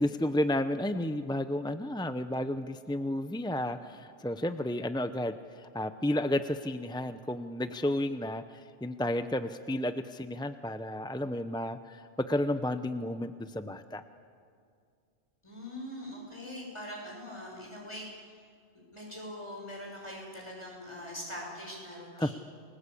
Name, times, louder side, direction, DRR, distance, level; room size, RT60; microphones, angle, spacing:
voice 1, 0.0-14.0 22.2-22.3, left 1 dB, 5° left, 10 dB, 0.4 m, -32 dB
voice 2, 15.4-18.3 18.9-22.3, left 1 dB, 25° left, -2 dB, 6.3 m, -42 dB
29.5 x 20.5 x 8.4 m, 2.3 s
omnidirectional pair, 1.2 m